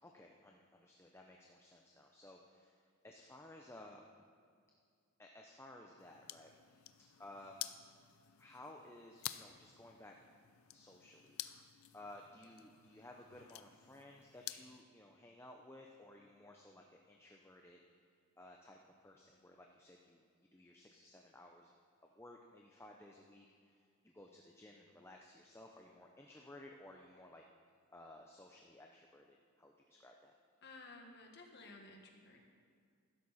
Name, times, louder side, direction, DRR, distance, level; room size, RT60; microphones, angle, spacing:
voice 1, 0.0-4.1 5.2-6.9 7.2-7.7 8.4-10.1 10.7-11.4 11.9-17.8 18.4-20.2 20.5-21.7 22.0-27.4 27.9-30.3, left 1 dB, 10° left, 1 dB, 0.6 m, -57 dB
sound 1, 6.0-14.8, left 13 dB, 75° left, 0.5 m, -51 dB
voice 2, 30.6-32.4, left 3 dB, 50° left, 1 dB, 1.6 m, -55 dB
15.0 x 12.5 x 4.2 m, 2.2 s
head